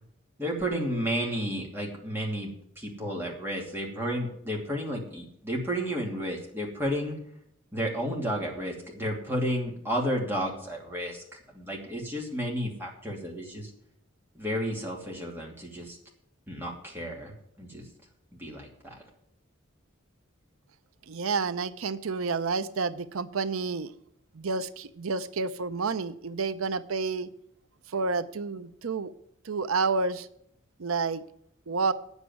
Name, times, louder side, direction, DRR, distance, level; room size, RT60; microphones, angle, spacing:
voice 1, 0.4-7.2 7.7-13.7 14.3-16.0 16.5-17.9 18.4-19.0, equal, 10° right, -2 dB, 2.6 m, -32 dB
voice 2, 21.1-23.9 24.3-27.3 27.9-29.1 29.4-30.3 30.8-31.2 31.7-31.9, right 4 dB, 85° right, 14 dB, 0.6 m, -29 dB
9.6 x 8.2 x 9.2 m, 0.72 s
head